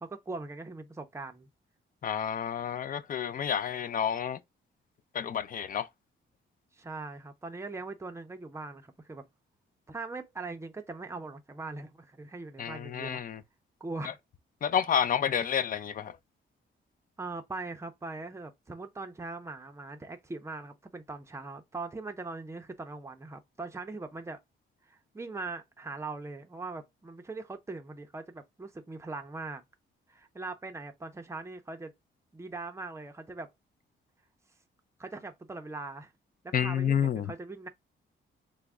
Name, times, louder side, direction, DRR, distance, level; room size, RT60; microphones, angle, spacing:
voice 1, 0.0-1.5 6.7-9.2 9.9-13.2 13.8-14.2 17.2-24.4 24.9-29.6 30.1-31.9 32.3-33.5 35.0-36.1 36.4-37.7, right 3 dB, 15° right, 0.5 m, -41 dB
voice 2, 2.0-4.4 5.1-5.9 12.6-13.4 14.6-16.2 36.5-37.3, left 8 dB, 40° left, 0.4 m, -29 dB
3.4 x 2.1 x 3.4 m
cardioid pair, 105°, 21 cm